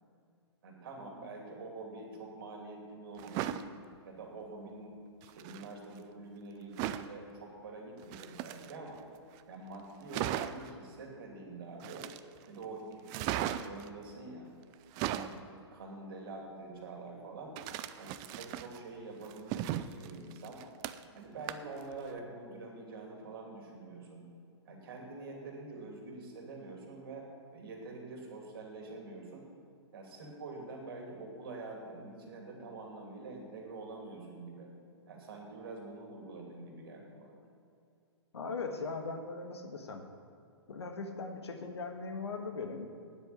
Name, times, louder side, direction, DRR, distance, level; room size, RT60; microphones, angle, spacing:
voice 1, 0.6-3.6 4.0-5.0 5.2-9.0 9.5-12.0 12.5-14.5 15.0-15.4 15.7-17.5 18.0-20.6 21.1-24.3 24.6-27.2 27.5-29.5 29.9-34.7 35.1-37.4, right 3 dB, 55° right, 0 dB, 2.8 m, -46 dB
sound 1, 3.2-3.7 5.2-5.7 6.8-7.1 8.0-9.0 9.4-9.5 9.7-9.8 10.1-10.7 11.8-12.4 13.1-13.9 14.7-15.4 17.6-18.8 19.2-21.2 21.5-21.8 22.2-22.3, right 12 dB, 25° right, 0.4 m, -37 dB
voice 2, 38.3-40.0 40.7-42.9, left 4 dB, 70° left, 5 dB, 1.5 m, -39 dB
9.4 x 8.2 x 8.5 m, 2.5 s
figure-of-eight pair, 120°, 15 cm